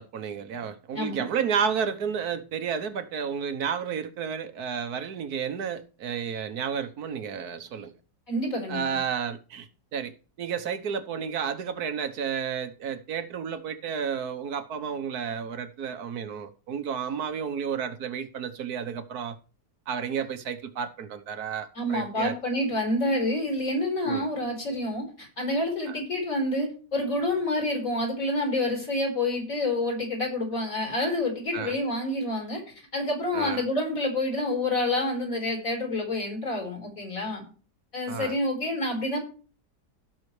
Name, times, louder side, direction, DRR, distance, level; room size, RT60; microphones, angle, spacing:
voice 1, 0.0-7.9 8.7-10.1 10.4-19.4 19.9-22.3 24.0-24.3 25.9-26.0 31.5-31.7 33.3-33.7 38.1-38.3, right 7 dB, 65° right, 1.5 m, -31 dB
voice 2, 8.3-9.0 21.8-32.6 32.9-37.4 37.9-39.2, left 1 dB, 50° left, 5.3 m, -28 dB
16.5 x 6.3 x 3.2 m
omnidirectional pair, 1.8 m